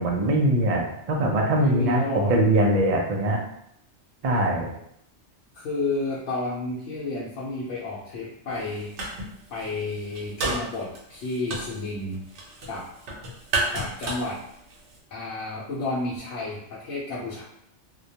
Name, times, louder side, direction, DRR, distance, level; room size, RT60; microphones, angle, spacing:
voice 1, 0.0-3.4 4.2-4.7, right 1 dB, 65° right, -1 dB, 0.3 m, -22 dB
voice 2, 1.6-2.3 5.5-9.1 9.5-12.2 12.7-12.9 13.7-14.4 15.1-17.4, left 2 dB, 75° left, -7 dB, 0.9 m, -31 dB
sound 1, 8.5-9.3 9.6-15.0, right 2 dB, 80° right, 0.9 m, -31 dB
2.3 x 2.1 x 2.7 m, 0.74 s
omnidirectional pair, 1.2 m